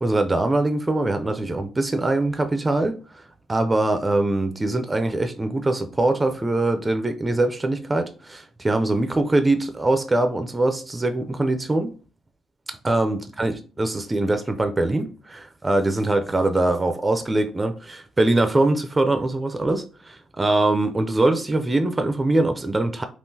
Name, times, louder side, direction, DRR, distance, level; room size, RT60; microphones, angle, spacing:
voice 1, 0.0-3.0 3.5-8.1 8.6-11.9 12.8-15.1 15.6-17.7 18.2-19.8 20.4-23.0, right 2 dB, 20° right, 0.4 m, -22 dB
3.6 x 2.4 x 2.6 m
cardioid pair, 90°, 0 cm